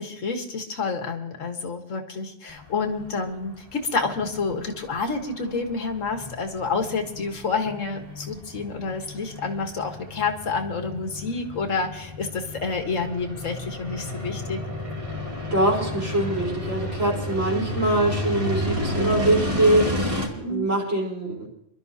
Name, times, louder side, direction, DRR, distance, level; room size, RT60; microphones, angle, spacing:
voice 1, 0.0-14.6 17.5-17.7 20.4-20.7, left 4 dB, 80° left, 4 dB, 1.7 m, -29 dB
sound 1, 2.5-20.3, left 1 dB, 25° right, 2.6 m, -32 dB
voice 2, 15.5-21.5, right 1 dB, 65° right, -2 dB, 4.5 m, -23 dB
27.0 x 12.0 x 2.7 m, 0.75 s
omnidirectional pair, 1.3 m